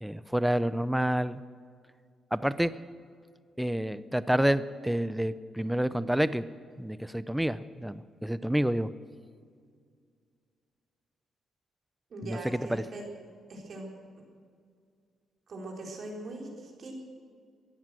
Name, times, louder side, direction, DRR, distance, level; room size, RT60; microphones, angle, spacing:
voice 1, 0.0-1.4 2.3-2.7 3.6-6.4 6.8-8.9 12.2-12.8, right 1 dB, 5° right, 15 dB, 0.6 m, -28 dB
voice 2, 12.1-13.0 13.5-13.9 15.5-16.9, right 2 dB, 55° right, 0 dB, 4.1 m, -41 dB
17.0 x 11.0 x 7.7 m, 2.1 s
cardioid pair, 85°, 0 cm